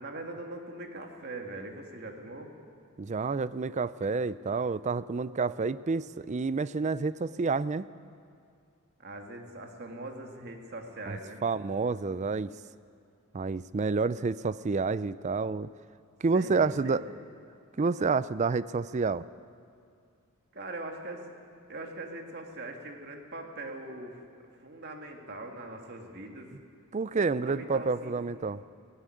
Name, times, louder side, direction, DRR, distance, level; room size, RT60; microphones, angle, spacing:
voice 1, 0.0-2.5 9.0-11.4 16.3-17.0 20.5-21.3 21.7-24.2 24.6-26.5 27.2-28.1, right 2 dB, 50° right, 2 dB, 2.2 m, -41 dB
voice 2, 3.0-7.9 11.1-12.5 13.3-15.7 16.2-17.0 17.8-19.2 26.9-28.6, right 4 dB, 35° right, 16 dB, 0.4 m, -29 dB
17.0 x 15.5 x 9.9 m, 2.4 s
head